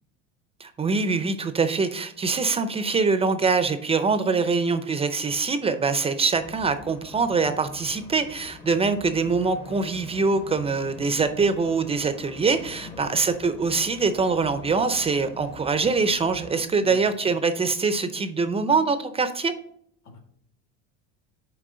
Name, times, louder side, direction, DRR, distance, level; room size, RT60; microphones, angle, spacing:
voice 1, 0.6-19.5, right 4 dB, 20° right, 10 dB, 0.5 m, -24 dB
sound 1, 6.3-16.7, left 3 dB, 20° left, 0.8 m, -44 dB
voice 2, 12.8-13.2 16.8-17.1 20.0-20.2, left 2 dB, 80° left, 1 dB, 2.3 m, -45 dB
6.2 x 4.5 x 5.5 m, 0.66 s
cardioid pair, 130°, 31 cm